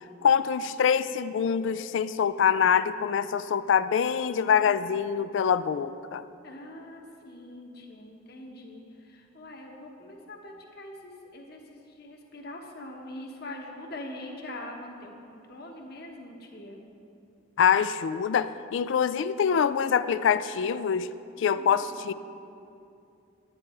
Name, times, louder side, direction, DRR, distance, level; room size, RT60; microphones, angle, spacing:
voice 1, 0.2-6.2 17.6-21.1 21.4-22.1, left 7 dB, 65° left, 14 dB, 0.3 m, -25 dB
voice 2, 6.4-16.8 21.5-22.1, left 1 dB, 50° left, 1 dB, 1.1 m, -43 dB
10.5 x 9.7 x 4.4 m, 2.6 s
head